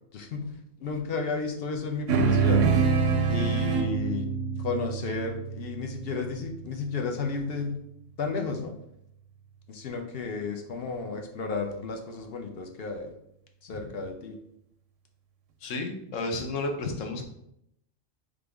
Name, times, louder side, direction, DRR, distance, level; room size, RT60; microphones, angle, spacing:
voice 1, 0.1-0.5 0.8-2.6 3.3-4.3 4.6-7.8 8.2-8.7 9.7-13.1 13.7-14.4, left 4 dB, 60° left, 4 dB, 0.7 m, -32 dB
sound 1, 2.1-6.8, right 5 dB, 85° right, 0.9 m, -26 dB
voice 2, 15.6-17.2, left 2 dB, 85° left, 4 dB, 1.1 m, -32 dB
3.8 x 3.5 x 3.4 m, 0.77 s
omnidirectional pair, 1.3 m